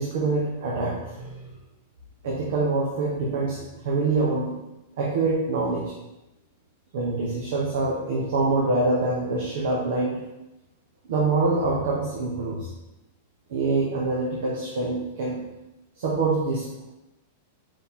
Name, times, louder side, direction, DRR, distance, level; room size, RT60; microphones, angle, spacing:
voice 1, 0.0-1.5 2.2-4.5 5.0-5.9 6.9-10.2 11.1-12.7 13.5-15.4 16.0-16.8, right 3 dB, 65° right, -3 dB, 1.2 m, -25 dB
5.3 x 4.7 x 3.7 m, 0.97 s
supercardioid pair, 165°, 0 cm